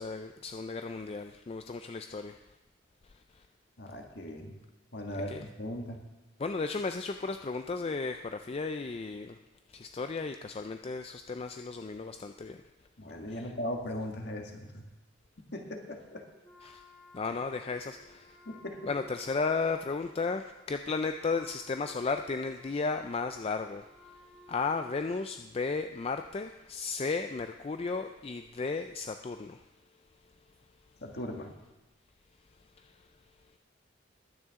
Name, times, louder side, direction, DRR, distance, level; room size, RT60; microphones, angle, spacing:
voice 1, 0.0-2.4 3.3-3.4 5.1-5.5 6.4-9.4 9.7-12.6 13.3-13.5 16.6-16.8 17.1-18.4 18.9-23.9 24.5-29.6 32.8-33.0, left 4 dB, 30° left, 7 dB, 0.4 m, -34 dB
voice 2, 3.8-4.6 4.9-6.0 13.0-14.9 15.5-16.2 18.5-18.9 31.0-31.5, left 1 dB, 55° left, 2 dB, 1.7 m, -38 dB
Wind instrument woodwind instrument, 16.4-25.2, equal, 5° left, 2.0 m, -57 dB
21.0 x 9.2 x 3.7 m, 1.1 s
head